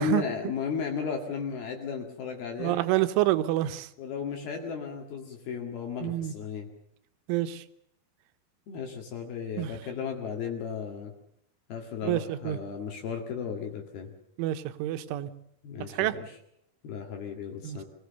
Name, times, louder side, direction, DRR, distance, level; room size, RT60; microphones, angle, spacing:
voice 1, 0.0-2.8 4.0-6.7 8.7-11.1 11.7-14.1 15.6-16.4 16.8-17.8, left 6 dB, 60° left, 3 dB, 3.6 m, -35 dB
voice 2, 2.6-3.9 6.0-6.3 7.3-7.6 9.6-9.7 12.0-12.6 14.4-15.3 16.0-16.1 17.6-17.8, right 14 dB, 85° right, 11 dB, 3.4 m, -27 dB
25.5 x 17.0 x 6.9 m, 0.76 s
omnidirectional pair, 5.5 m